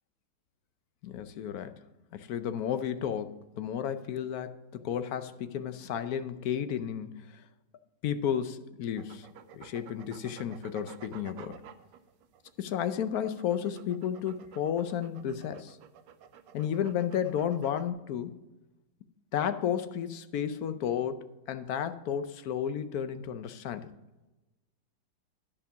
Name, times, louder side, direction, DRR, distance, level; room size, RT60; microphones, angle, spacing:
voice 1, 1.0-1.7 2.1-7.2 8.0-9.3 9.5-11.6 12.6-15.8 16.5-18.4 19.3-23.9, left 9 dB, 65° left, 11 dB, 1.0 m, -32 dB
sound 1, 9.0-17.9, right 8 dB, 85° right, 1.3 m, -52 dB
10.5 x 5.6 x 6.9 m, 1.1 s
omnidirectional pair, 1.9 m